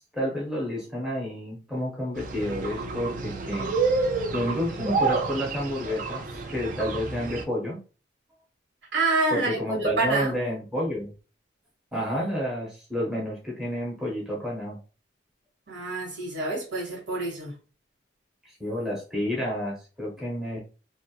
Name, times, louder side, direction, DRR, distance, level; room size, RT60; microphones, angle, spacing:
voice 1, 0.1-3.7 4.3-7.8 9.3-11.1 11.9-14.8 18.4-20.6, equal, ahead, 0.6 m, -30 dB
sound 1, 2.2-7.4, right 4 dB, 45° right, 0.3 m, -29 dB
voice 2, 8.9-10.3 15.7-17.5, right 2 dB, 75° right, 1.1 m, -27 dB
2.2 x 2.0 x 2.7 m
head